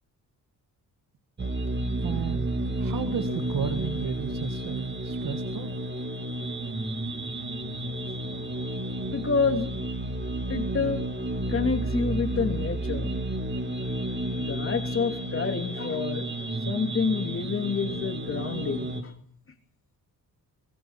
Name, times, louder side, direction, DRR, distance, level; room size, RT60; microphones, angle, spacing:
sound 1, 1.4-19.0, right 1 dB, 30° right, 2.2 m, -31 dB
voice 1, 2.0-2.5 2.8-5.8, right 8 dB, 65° right, 7 dB, 1.8 m, -33 dB
voice 2, 9.1-9.7 10.5-11.0 11.5-13.1 14.4-16.3 16.7-19.1, left 5 dB, 35° left, 6 dB, 3.0 m, -28 dB
24.5 x 19.5 x 5.8 m, 0.62 s
cardioid pair, 105°, 36 cm